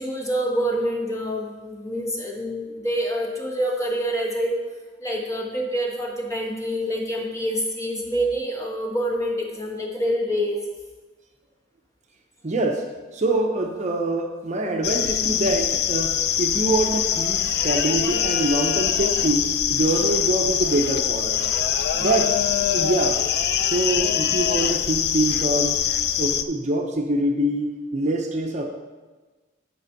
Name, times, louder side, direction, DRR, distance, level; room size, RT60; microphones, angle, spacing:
voice 1, 0.0-4.6 5.0-10.6 21.9-22.1, equal, 15° left, -1 dB, 1.4 m, -26 dB
voice 2, 12.4-21.5 22.0-22.4 22.7-23.2 23.6-25.8 26.2-28.7, right 2 dB, 40° right, 3 dB, 0.7 m, -24 dB
sound 1, 14.8-26.4, left 9 dB, 60° left, 0.4 m, -23 dB
8.3 x 5.1 x 5.9 m, 1.3 s
head